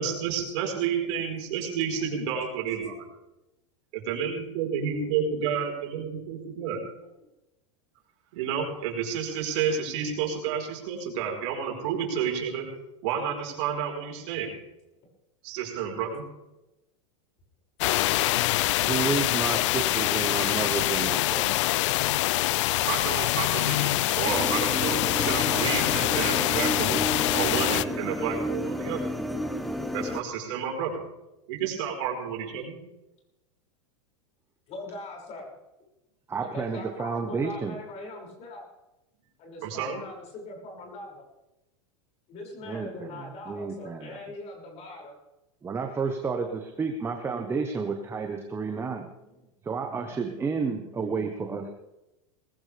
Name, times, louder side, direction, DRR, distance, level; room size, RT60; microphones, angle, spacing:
voice 1, 0.0-3.0 4.1-6.8 8.3-12.7 13.0-14.5 15.4-16.3 21.9-27.0 27.3-29.1 29.9-31.0 31.5-32.8 39.6-40.0, right 7 dB, 65° right, 1 dB, 4.8 m, -30 dB
voice 2, 5.0-5.6 7.0-7.1 28.0-28.1 34.7-35.6 36.4-38.6 39.4-41.3 42.3-45.2 46.4-46.8 48.0-49.5 50.9-51.7, left 2 dB, 40° left, -1 dB, 6.4 m, -43 dB
sound 1, 17.8-27.9, left 17 dB, 70° left, 0.5 m, -25 dB
voice 3, 18.8-21.5 36.3-37.8 42.6-44.2 45.6-49.1 49.6-51.7, right 5 dB, 15° right, 4 dB, 1.2 m, -31 dB
sound 2, 24.3-30.2, equal, ahead, 0.7 m, -31 dB
19.5 x 15.5 x 3.5 m, 0.94 s
supercardioid pair, 130°, 16 cm